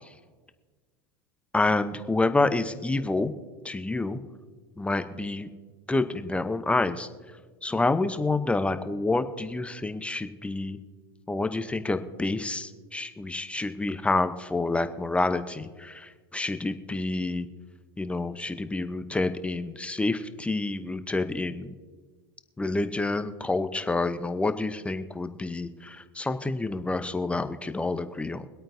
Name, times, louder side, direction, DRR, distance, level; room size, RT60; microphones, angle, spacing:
voice 1, 1.5-3.3 3.6-4.2 4.8-5.5 5.9-7.1 7.6-10.8 11.3-17.5 18.0-21.7 22.6-28.5, left 2 dB, 10° left, 9 dB, 0.8 m, -28 dB
24.0 x 8.7 x 2.7 m, 1.4 s
hypercardioid pair, 100°, 12 cm